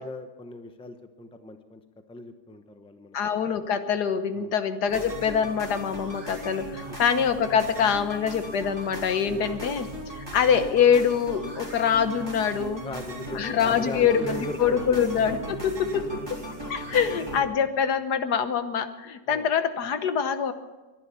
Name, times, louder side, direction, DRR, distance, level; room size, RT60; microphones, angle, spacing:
voice 1, 0.0-1.8 2.1-3.2 4.4-4.5 6.9-7.0 9.2-9.5 12.8-15.0 16.9-17.3 19.3-19.5, left 2 dB, 5° left, 7 dB, 0.7 m, -38 dB
voice 2, 3.1-9.9 10.1-12.8 13.3-16.4 16.7-20.5, left 7 dB, 75° left, 10 dB, 1.6 m, -24 dB
sound 1, 4.9-17.4, right 1 dB, 15° right, 3.4 m, -37 dB
23.0 x 10.5 x 5.7 m, 1.2 s
omnidirectional pair, 1.8 m